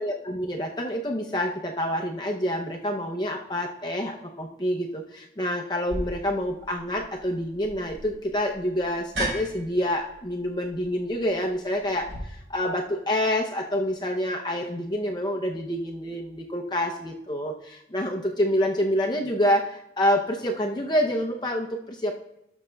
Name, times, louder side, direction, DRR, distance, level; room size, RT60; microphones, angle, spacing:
voice 1, 0.0-22.2, equal, 20° left, 1 dB, 0.6 m, -27 dB
sound 1, 5.9-12.2, right 1 dB, 85° right, 3.9 m, -37 dB
18.0 x 6.3 x 2.2 m, 0.81 s
head